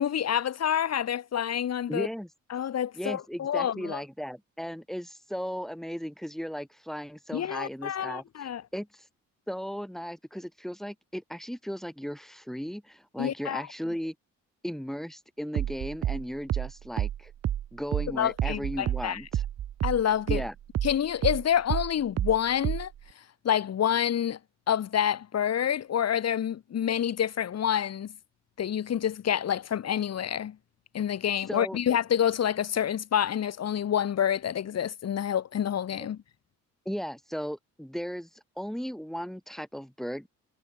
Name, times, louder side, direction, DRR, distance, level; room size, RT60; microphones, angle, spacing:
voice 1, 0.0-2.1 2.5-4.0 7.3-8.6 13.2-13.6 18.2-19.2 19.8-20.4 20.8-22.9 23.4-24.4 24.7-28.1 28.6-30.6 30.9-36.2, left 9 dB, 55° left, 2.3 m, -28 dB
voice 2, 1.9-2.3 2.9-9.1 9.5-14.1 14.6-17.3 17.7-19.4 20.3-20.5 31.5-31.8 36.8-40.3, equal, ahead, 7.9 m, -36 dB
sound 1, 15.5-20.5 20.7-23.0, right 11 dB, 55° right, 1.0 m, -29 dB
cardioid pair, 90°, 30 cm